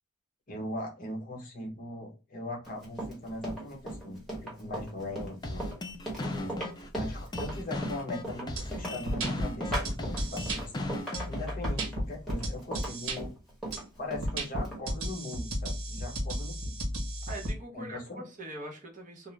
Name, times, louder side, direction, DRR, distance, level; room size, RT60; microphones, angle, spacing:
voice 1, 0.5-5.7 6.0-6.5 6.9-10.7 11.2-13.3 14.0-16.7 17.7-18.2, left 1 dB, 40° left, 0.9 m, -40 dB
Run, 2.6-14.8, right 1 dB, ahead, 1.0 m, -38 dB
sound 1, 5.4-11.4, left 2 dB, 20° left, 0.3 m, -37 dB
sound 2, 8.6-8.7 9.1-10.6 11.1-13.2 13.7-13.8 14.2-17.5, right 1 dB, 85° right, 0.9 m, -33 dB
voice 2, 17.3-19.3, right 1 dB, 35° right, 0.7 m, -42 dB
2.4 x 2.0 x 3.1 m
head